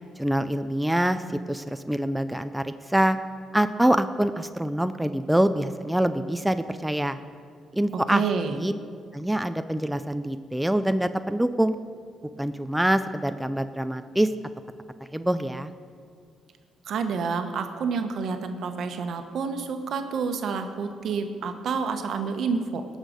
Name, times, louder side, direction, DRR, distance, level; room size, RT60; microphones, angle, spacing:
voice 1, 0.2-3.2 3.5-7.2 7.7-8.2 8.5-8.7 9.1-11.7 12.4-14.3 15.1-15.7, right 1 dB, 5° right, 10 dB, 0.4 m, -25 dB
voice 2, 8.1-8.6 16.9-22.9, right 5 dB, 65° right, 7 dB, 1.0 m, -28 dB
18.0 x 6.5 x 5.1 m, 2.2 s
cardioid pair, 90°, 0 cm